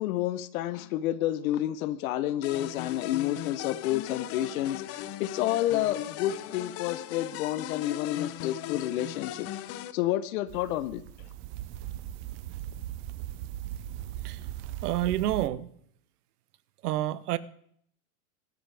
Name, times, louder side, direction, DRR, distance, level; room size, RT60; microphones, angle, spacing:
voice 1, 0.0-11.0, left 13 dB, 65° left, 0.9 m, -30 dB
sound 1, 2.4-9.9, left 13 dB, 30° left, 0.6 m, -38 dB
sound 2, 10.5-15.5, right 13 dB, 30° right, 0.4 m, -39 dB
voice 2, 14.8-15.7 16.8-17.4, right 13 dB, 80° right, 0.8 m, -29 dB
23.5 x 7.8 x 3.4 m
hypercardioid pair, 120°, 45 cm